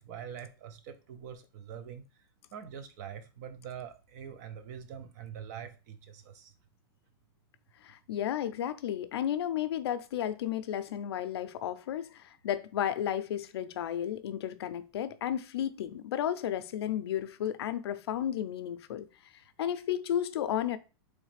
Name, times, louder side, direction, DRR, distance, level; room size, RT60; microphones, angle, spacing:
voice 1, 0.0-2.0 2.5-6.5, right 8 dB, 45° right, 0.6 m, -44 dB
voice 2, 7.8-19.1 19.6-20.8, left 10 dB, 80° left, 0.5 m, -33 dB
4.0 x 3.2 x 3.2 m
supercardioid pair, 165°, 13 cm